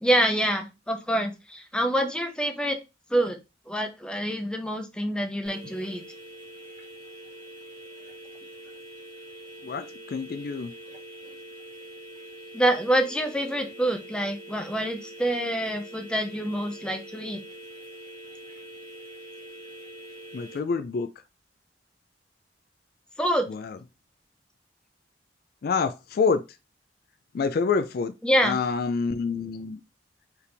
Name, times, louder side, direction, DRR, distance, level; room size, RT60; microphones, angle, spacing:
voice 1, 0.0-2.8 3.1-3.4 3.7-6.0 12.5-17.4 23.2-23.5 28.2-28.6, right 1 dB, 5° left, 0.6 m, -26 dB
sound 1, 5.4-20.6, right 1 dB, 25° right, 2.0 m, -44 dB
voice 2, 9.6-10.7 20.3-21.1 23.5-23.8 25.6-26.4 27.3-28.1 28.4-29.8, left 5 dB, 55° left, 0.3 m, -27 dB
4.7 x 3.4 x 3.3 m
head